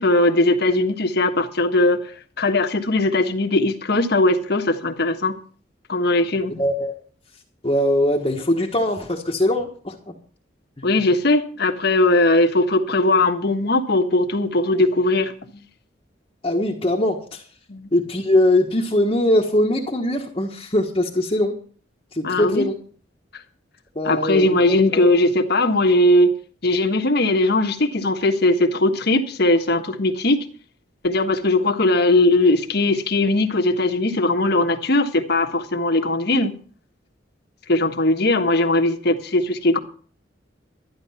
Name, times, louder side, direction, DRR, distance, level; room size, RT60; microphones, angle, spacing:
voice 1, 0.0-2.0 2.4-5.4 5.9-6.6 10.8-15.3 17.7-17.9 22.2-22.6 24.0-26.3 26.6-30.4 31.0-36.5 37.7-39.8, left 2 dB, 60° left, 4 dB, 1.4 m, -19 dB
voice 2, 6.6-6.9 7.6-10.1 16.4-17.4 17.9-21.6 22.1-22.8 23.9-25.1, left 1 dB, 30° left, -2 dB, 1.4 m, -21 dB
12.5 x 10.5 x 5.7 m, 0.43 s
head